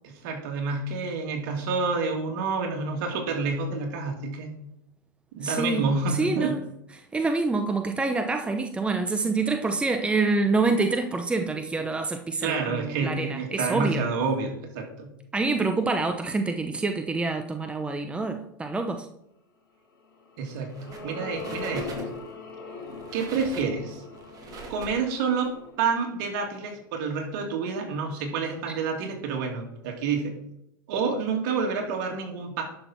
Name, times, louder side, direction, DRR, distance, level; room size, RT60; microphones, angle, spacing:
voice 1, 0.0-4.5 5.4-6.5 12.4-15.1 20.4-22.1 23.1-24.0 24.7-25.5 25.8-30.3 30.9-32.6, right 4 dB, 55° right, 2 dB, 2.8 m, -28 dB
voice 2, 5.4-6.6 7.1-14.0 15.3-19.1, right 3 dB, 10° right, 6 dB, 0.7 m, -26 dB
sound 1, 20.2-26.7, left 4 dB, 85° left, 2.7 m, -41 dB
sound 2, 20.7-21.1 21.3-22.3 22.8-25.5, right 4 dB, 30° right, 2.5 m, -42 dB
11.5 x 6.2 x 4.5 m, 0.81 s
hypercardioid pair, 105°, 11 cm